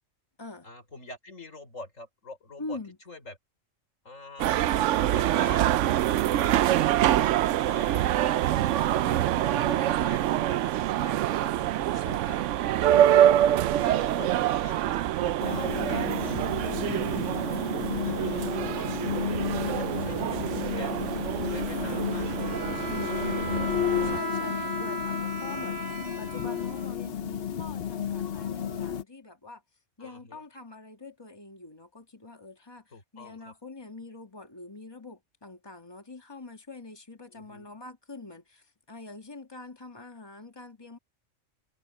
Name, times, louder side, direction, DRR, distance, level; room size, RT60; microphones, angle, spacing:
voice 1, 0.6-2.8 3.1-3.4 4.1-4.5 5.1-5.9 6.3-6.7 7.0-8.3 8.9-17.8 18.2-19.0 19.5-20.9 21.4-23.5 24.0-24.5 30.0-30.4 32.9-33.5 37.3-37.7, left 2 dB, 90° left, 5.0 m, -46 dB
voice 2, 2.6-3.0 9.0-10.2 11.9-12.5 16.6-17.1 22.9-23.5 23.8-29.6 30.0-41.0, left 2 dB, 20° left, 2.5 m, -44 dB
sound 1, 4.4-24.2, right 12 dB, 75° right, 0.9 m, -25 dB
sound 2, 15.4-29.0, left 9 dB, 55° left, 1.0 m, -32 dB
Bowed string instrument, 22.2-27.2, right 1 dB, 35° right, 1.8 m, -36 dB
omnidirectional pair, 1.3 m